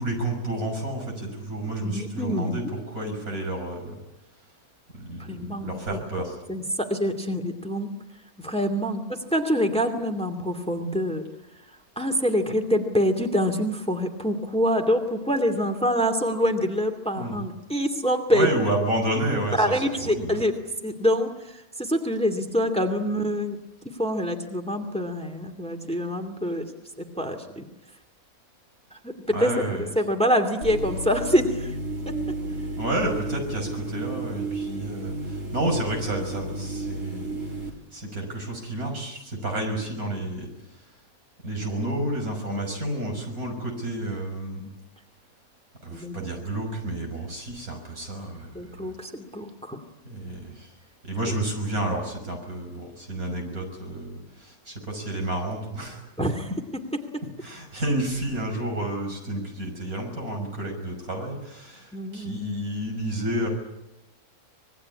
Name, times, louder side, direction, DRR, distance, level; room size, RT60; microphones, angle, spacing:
voice 1, 0.0-4.0 4.9-6.4 17.1-17.4 18.3-20.4 29.3-29.9 32.8-37.3 37.9-40.5 41.4-44.7 45.8-48.9 50.0-50.7 51.0-56.4 57.4-63.5, right 1 dB, 75° right, 3 dB, 6.5 m, -30 dB
voice 2, 1.8-2.6 5.2-6.0 6.5-7.9 8.4-9.0 9.3-11.2 12.0-18.5 19.6-20.5 20.8-23.6 24.0-26.6 27.0-27.7 29.0-29.1 29.4-29.5 30.0-31.7 45.9-46.2 48.5-49.8 56.2-56.5 61.9-62.4, equal, 5° left, 6 dB, 2.4 m, -25 dB
sound 1, 30.6-37.7, right 2 dB, 60° right, 3.4 m, -32 dB
25.5 x 21.0 x 9.8 m, 0.93 s
omnidirectional pair, 1.5 m